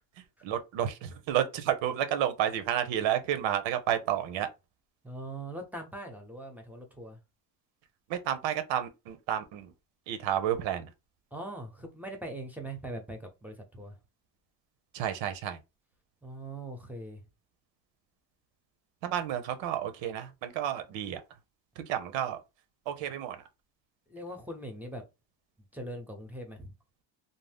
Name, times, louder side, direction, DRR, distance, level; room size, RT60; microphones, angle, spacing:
voice 1, 0.4-4.5 8.1-9.7 10.1-10.9 14.9-15.6 19.0-21.2 21.8-22.4 22.9-23.4, right 10 dB, 90° right, 0.7 m, -31 dB
voice 2, 5.0-7.2 11.3-14.0 16.2-17.2 24.1-25.0 25.7-26.7, right 1 dB, 5° right, 0.6 m, -41 dB
2.6 x 2.0 x 3.3 m
cardioid pair, 125°, 44 cm